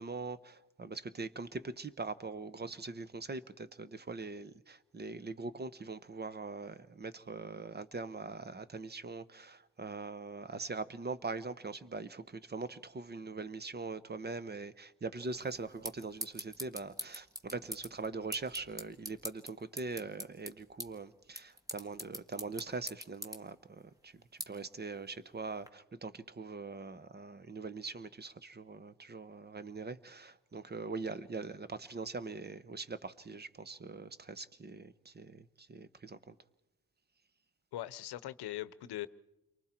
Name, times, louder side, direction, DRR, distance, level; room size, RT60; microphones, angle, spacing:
voice 1, 0.0-36.4, right 4 dB, 25° right, 0.8 m, -42 dB
sound 1, 15.2-25.7, equal, 10° right, 1.5 m, -47 dB
voice 2, 37.7-39.1, left 14 dB, 90° left, 0.8 m, -40 dB
29.5 x 23.5 x 4.4 m
cardioid pair, 105°, 38 cm